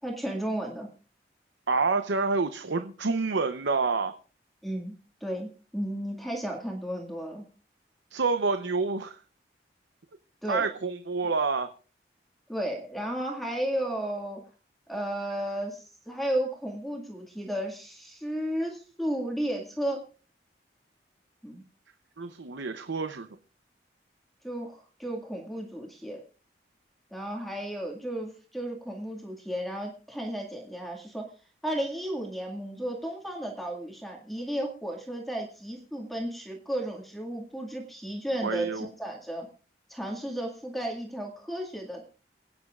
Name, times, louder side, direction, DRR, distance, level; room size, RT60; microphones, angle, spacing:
voice 1, 0.0-0.9 4.6-4.9 5.2-7.4 10.4-10.6 12.5-14.4 14.9-20.0 21.4-21.6 24.4-26.2 27.1-31.3 31.6-39.5 39.9-42.1, right 1 dB, ahead, 0 dB, 1.9 m, -33 dB
voice 2, 1.7-4.2 8.1-9.2 10.5-11.7 22.2-23.3 38.4-38.9, right 4 dB, 90° right, 9 dB, 0.8 m, -28 dB
28.5 x 9.6 x 2.4 m, 0.37 s
head